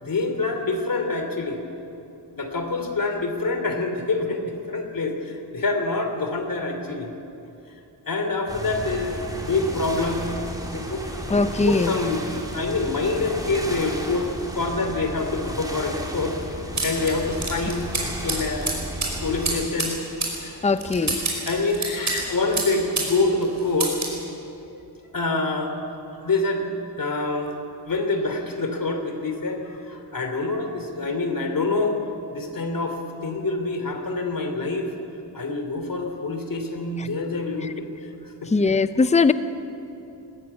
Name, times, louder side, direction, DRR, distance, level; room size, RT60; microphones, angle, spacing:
voice 1, 0.0-1.6 2.3-7.1 8.1-10.3 10.7-16.4 16.8-18.8 19.2-20.0 20.4-20.5 21.0-21.1 21.5-24.0 24.4-24.8 25.1-25.8 26.1-26.7 27.0-27.6 27.8-32.0 32.3-34.9 35.3-37.9 38.2-38.5, left 3 dB, 55° left, 5 dB, 2.9 m, -26 dB
sound 1, 8.5-19.7, equal, 10° right, 2.7 m, -34 dB
voice 2, 11.3-11.9 20.6-21.2 37.0-37.1 37.6-37.7 38.5-39.3, left 4 dB, 15° left, 13 dB, 0.6 m, -20 dB
sound 2, 16.8-23.2 23.4-24.2, right 3 dB, 40° right, 5.1 m, -29 dB
21.0 x 14.5 x 9.5 m, 2.9 s
wide cardioid pair, 120°, 41 cm